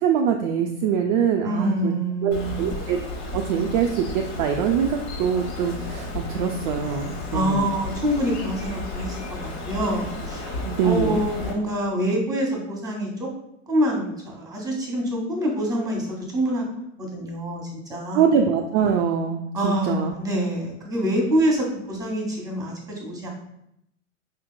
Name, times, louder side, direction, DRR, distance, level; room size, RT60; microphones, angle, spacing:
voice 1, 0.0-1.9 2.2-3.0 3.3-7.7 10.6-11.2 18.1-20.1, right 7 dB, 45° right, 3 dB, 0.4 m, -23 dB
voice 2, 1.4-2.8 7.3-9.2 9.6-13.3 13.7-16.6 17.0-18.3 19.5-23.3, equal, 10° right, 1 dB, 1.2 m, -26 dB
Bird, 2.3-11.5, left 2 dB, 60° left, 1.2 m, -33 dB
4.9 x 2.9 x 2.2 m, 0.79 s
hypercardioid pair, 95°, 37 cm